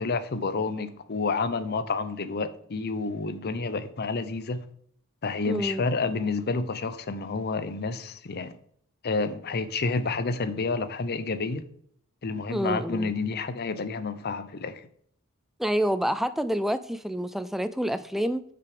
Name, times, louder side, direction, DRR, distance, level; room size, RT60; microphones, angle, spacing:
voice 1, 0.0-4.7 5.2-8.5 9.0-11.6 12.2-14.9, left 4 dB, 50° left, 0.6 m, -29 dB
voice 2, 5.5-5.8 12.5-13.1 15.6-18.4, equal, ahead, 0.3 m, -28 dB
6.7 x 5.9 x 5.1 m
head